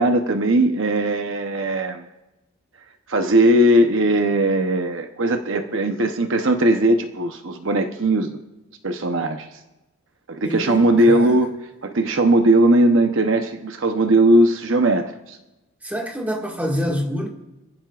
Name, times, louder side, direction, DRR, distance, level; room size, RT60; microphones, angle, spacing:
voice 1, 0.0-2.0 3.1-8.4 8.8-9.5 10.3-11.5 11.8-15.4, right 1 dB, 60° right, 0.9 m, -18 dB
voice 2, 10.4-11.4 15.8-17.3, equal, 5° right, 1.9 m, -26 dB
26.5 x 15.0 x 2.5 m
head